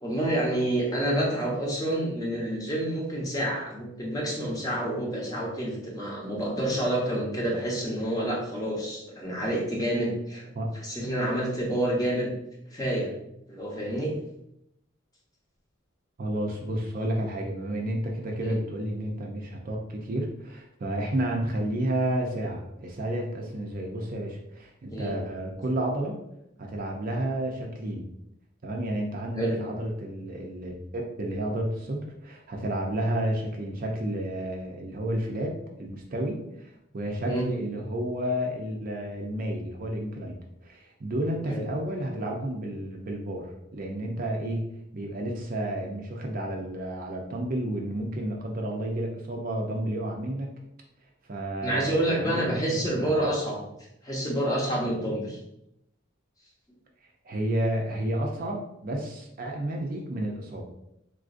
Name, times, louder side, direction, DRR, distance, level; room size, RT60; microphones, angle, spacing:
voice 1, 0.0-10.5 10.7-12.3 12.7-13.1 13.5-14.1 18.5-18.6 24.9-25.1 29.3-29.6 37.2-37.5 41.5-41.6 51.6-53.6 54.0-55.4, right 1 dB, 20° left, -3 dB, 0.8 m, -28 dB
voice 2, 16.2-26.2 26.6-28.0 28.6-30.7 31.2-40.4 40.6-43.5 43.7-44.7 44.9-50.5 51.3-53.1 57.2-60.6, right 1 dB, 45° right, 1 dB, 0.5 m, -31 dB
3.8 x 2.5 x 2.5 m, 0.80 s
head